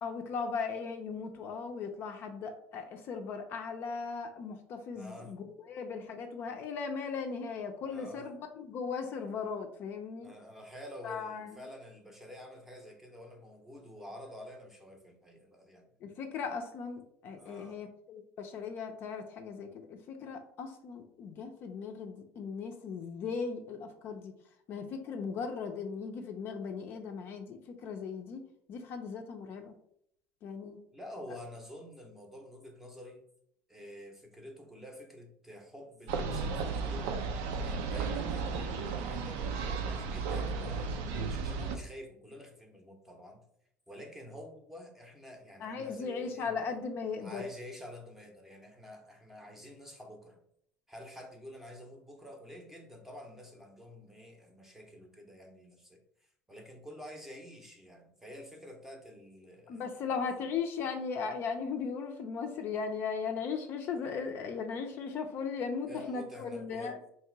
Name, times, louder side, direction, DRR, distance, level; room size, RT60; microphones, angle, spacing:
voice 1, 0.0-10.3 11.0-11.6 16.0-24.4 24.7-28.4 28.7-29.7 30.4-30.8 45.6-47.5 59.7-67.0, left 5 dB, 40° left, 4 dB, 0.5 m, -37 dB
voice 2, 4.9-5.4 7.8-8.3 10.2-16.0 17.4-17.8 30.9-33.2 33.7-37.2 37.6-43.4 43.9-46.5 47.2-50.4 50.9-56.0 56.5-60.5 65.9-67.0, left 1 dB, 5° right, 2 dB, 0.7 m, -49 dB
sound 1, 36.1-41.8, right 4 dB, 90° right, 0.6 m, -34 dB
3.1 x 2.8 x 4.5 m, 0.70 s
cardioid pair, 165°, 6 cm